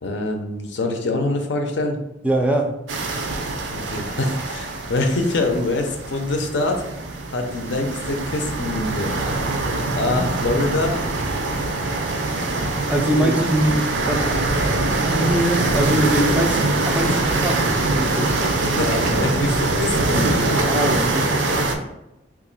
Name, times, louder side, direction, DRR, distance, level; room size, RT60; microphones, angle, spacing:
voice 1, 0.0-2.0 3.7-6.8 7.3-9.1 9.9-11.0 13.1-13.3 18.6-20.6, left 2 dB, 65° left, 3 dB, 0.5 m, -24 dB
voice 2, 2.2-2.7 10.1-10.2 12.9-14.5 14.8-16.6 16.9-17.7 17.9-18.3 20.7-21.4, right 1 dB, 5° right, 2 dB, 0.4 m, -22 dB
sound 1, 2.9-21.7, right 2 dB, 75° right, 0.5 m, -23 dB
2.9 x 2.5 x 4.0 m, 0.86 s
head